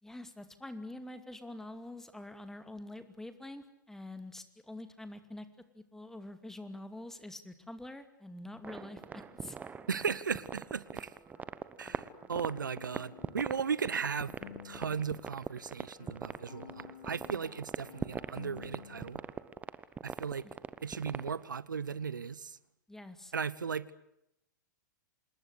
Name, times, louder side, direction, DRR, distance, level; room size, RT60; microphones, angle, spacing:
voice 1, 0.0-5.5 5.7-9.6 20.4-20.5 22.9-23.3, left 1 dB, 5° left, 10 dB, 2.4 m, -46 dB
sound 1, 8.6-21.4, right 6 dB, 15° right, 1.1 m, -41 dB
sound 2, 8.9-19.6, right 4 dB, 35° right, 7.6 m, -63 dB
voice 2, 9.9-11.1 11.8-14.3 14.6-19.2 20.0-20.4 20.8-22.6 23.3-23.9, right 6 dB, 75° right, 19 dB, 1.0 m, -36 dB
sound 3, 11.4-15.3 15.5-19.3, left 10 dB, 50° left, 1.8 m, -53 dB
27.0 x 20.5 x 8.2 m, 0.80 s
figure-of-eight pair, 105°, 10 cm